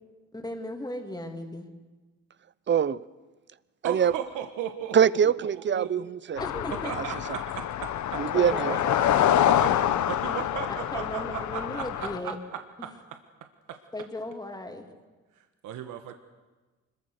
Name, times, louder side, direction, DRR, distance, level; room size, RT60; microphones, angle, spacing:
voice 1, 0.3-1.7 6.4-6.9 8.3-9.7 10.9-12.4 12.8-12.9 13.9-14.9, left 1 dB, 15° left, 4 dB, 3.1 m, -37 dB
voice 2, 2.7-3.0 3.8-4.1 4.9-6.4 8.2-8.7, right 8 dB, 40° right, 19 dB, 0.8 m, -23 dB
voice 3, 3.8-5.0 5.5-5.9 6.8-8.8 9.5-9.7 10.1-12.9 13.7-13.8 15.6-16.1, right 9 dB, 85° right, 6 dB, 1.5 m, -36 dB
sound 1, 6.4-12.2, left 10 dB, 70° left, 1.0 m, -26 dB
25.5 x 22.0 x 6.7 m, 1.3 s
cardioid pair, 90°, 30 cm